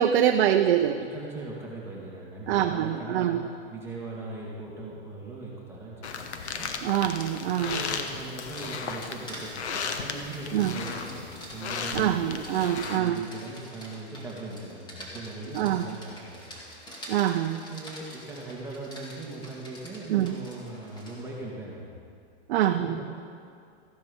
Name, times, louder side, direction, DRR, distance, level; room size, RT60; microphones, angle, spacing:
voice 1, 0.0-1.0 2.5-3.5 6.8-7.8 10.5-10.7 11.9-13.3 15.5-15.8 17.1-17.6 20.1-20.3 22.5-23.0, right 10 dB, 55° right, 6 dB, 0.7 m, -25 dB
voice 2, 1.0-6.7 7.6-11.3 11.5-12.2 12.7-16.6 17.7-21.9 22.8-23.0, right 2 dB, 5° right, -5 dB, 2.0 m, -40 dB
sound 1, 6.0-13.0, left 5 dB, 85° left, 1.3 m, -35 dB
Rain, 6.3-21.3, equal, 15° left, 2.2 m, -46 dB
14.5 x 10.5 x 5.3 m, 2.4 s
hypercardioid pair, 145°, 33 cm